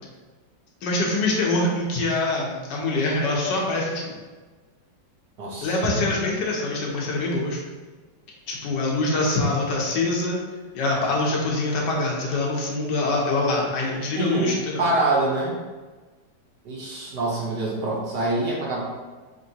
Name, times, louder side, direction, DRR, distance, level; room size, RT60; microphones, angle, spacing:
voice 1, 0.8-4.0 5.6-7.6 8.5-10.4 10.7-14.8, left 2 dB, 70° left, -1 dB, 1.3 m, -24 dB
voice 2, 5.4-5.7 14.2-15.6 16.6-18.8, right 2 dB, 65° right, -5 dB, 1.5 m, -25 dB
5.2 x 3.0 x 2.8 m, 1.3 s
omnidirectional pair, 2.1 m